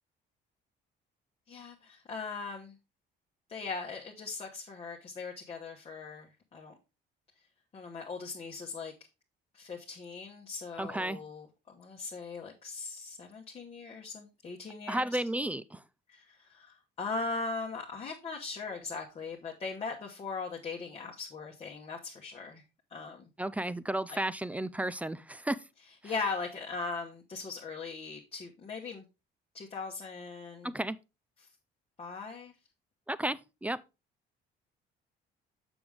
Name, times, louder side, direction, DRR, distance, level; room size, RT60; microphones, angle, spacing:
voice 1, 1.5-2.7 3.5-6.8 7.7-8.9 9.5-15.2 16.1-22.6 22.9-23.3 24.1-24.2 26.0-29.0 29.5-30.7 32.0-32.5, left 4 dB, 30° left, 1.2 m, -39 dB
voice 2, 10.8-11.2 14.9-15.8 23.4-25.6 30.6-31.0 33.1-33.8, right 1 dB, 10° right, 0.3 m, -33 dB
6.9 x 6.2 x 3.4 m
cardioid pair, 135°, 19 cm